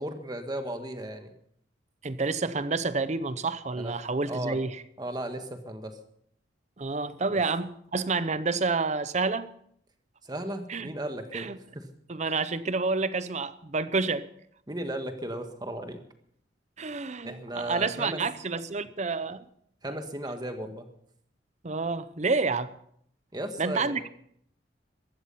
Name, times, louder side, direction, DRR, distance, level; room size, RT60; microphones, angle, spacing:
voice 1, 0.0-1.3 3.7-3.9 4.3-4.6 5.0-6.0 7.3-7.4 10.2-11.8 14.7-16.0 17.2-18.2 19.8-20.9 23.3-24.0, right 1 dB, 20° right, 1.6 m, -35 dB
voice 2, 2.0-4.8 6.8-9.5 10.7-10.9 11.3-11.6 12.1-14.2 16.8-19.4 21.6-22.7 23.6-24.1, right 4 dB, 40° right, 0.7 m, -29 dB
15.5 x 12.5 x 5.7 m
head